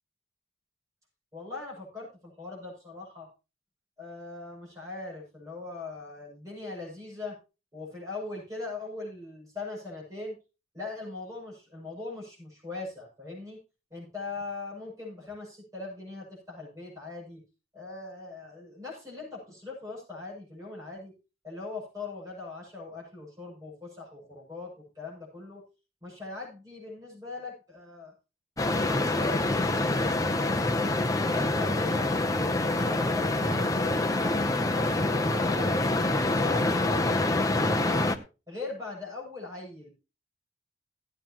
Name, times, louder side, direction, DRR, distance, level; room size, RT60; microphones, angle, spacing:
voice 1, 1.3-3.3 4.0-7.4 7.7-10.4 10.7-13.6 13.9-17.4 17.7-21.1 21.4-25.6 26.0-28.1 28.7-29.4 29.7-31.0 31.3-34.4 34.7-35.8 36.1-38.1 38.5-39.9, left 3 dB, 20° right, -4 dB, 7.3 m, -40 dB
sound 1, 28.6-38.2, left 2 dB, 20° left, 0.7 m, -26 dB
17.5 x 8.9 x 3.0 m, 0.30 s
head